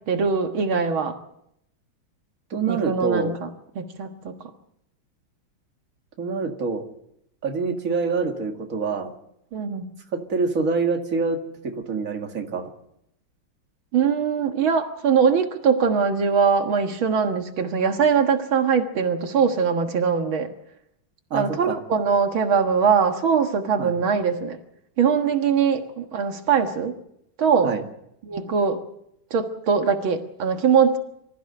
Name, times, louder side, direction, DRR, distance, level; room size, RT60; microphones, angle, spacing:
voice 1, 0.1-1.2 2.7-3.5 3.8-4.4 9.5-9.9 13.9-20.5 21.3-24.6 25.0-27.0 27.4-27.7 28.2-28.8 29.3-31.0, right 6 dB, 80° right, 5 dB, 2.4 m, -22 dB
voice 2, 2.5-3.4 6.2-6.8 7.4-9.1 10.1-11.4 11.6-12.7 21.3-21.8 23.8-23.9 27.6-27.8, right 4 dB, 40° right, 3 dB, 2.3 m, -26 dB
24.5 x 15.0 x 7.8 m, 0.78 s
omnidirectional pair, 2.2 m